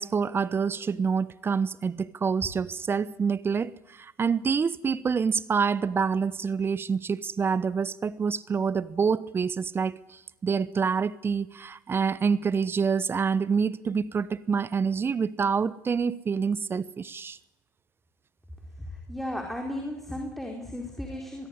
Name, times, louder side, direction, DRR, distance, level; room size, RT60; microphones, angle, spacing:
voice 1, 0.0-17.4, right 6 dB, 25° right, 1.0 m, -27 dB
voice 2, 18.9-21.5, left 1 dB, ahead, 4.5 m, -35 dB
23.0 x 22.0 x 9.8 m
hypercardioid pair, 75°, 9 cm